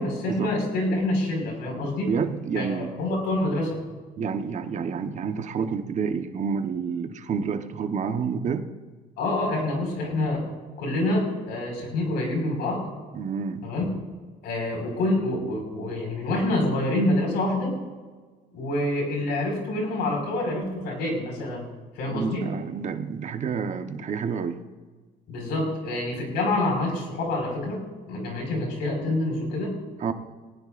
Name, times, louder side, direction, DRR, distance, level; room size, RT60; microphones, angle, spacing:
voice 1, 0.0-2.1 2.5-3.8 9.2-10.4 10.8-12.8 13.6-13.8 14.4-17.7 18.5-21.6 21.9-22.4 25.3-29.7, left 1 dB, 80° left, 1 dB, 5.2 m, -27 dB
voice 2, 2.1-2.9 4.2-8.7 13.1-13.6 22.1-24.6 30.0-30.1, right 6 dB, 45° right, 7 dB, 1.1 m, -29 dB
19.5 x 18.5 x 2.5 m, 1.4 s
cardioid pair, 110°, 17 cm